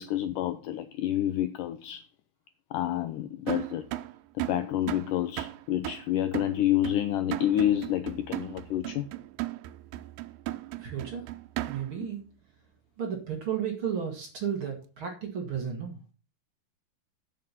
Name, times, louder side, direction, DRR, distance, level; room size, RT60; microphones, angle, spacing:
voice 1, 0.0-2.1 2.7-3.9 4.5-9.1, left 12 dB, 85° left, 1.9 m, -28 dB
sound 1, 3.5-12.1, right 16 dB, 90° right, 2.6 m, -37 dB
voice 2, 10.8-11.2 11.7-12.2 13.0-16.0, right 8 dB, 45° right, 1.9 m, -33 dB
8.2 x 7.6 x 5.8 m
omnidirectional pair, 4.4 m